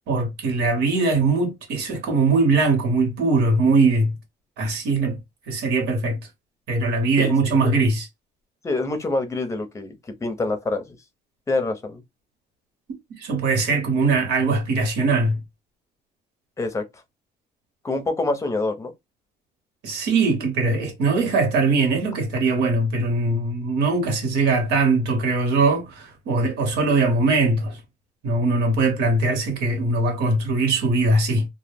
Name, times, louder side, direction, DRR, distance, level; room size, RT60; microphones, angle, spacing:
voice 1, 0.1-4.1 4.6-5.2 5.5-6.2 6.7-8.1 13.2-15.4 19.8-27.8 28.2-31.5, right 3 dB, 80° right, 1.1 m, -21 dB
voice 2, 7.2-7.8 8.6-11.0 11.5-12.0 16.6-16.8 17.8-18.9, left 2 dB, 15° left, 0.6 m, -26 dB
2.2 x 2.0 x 3.3 m
cardioid pair, 110°, 17 cm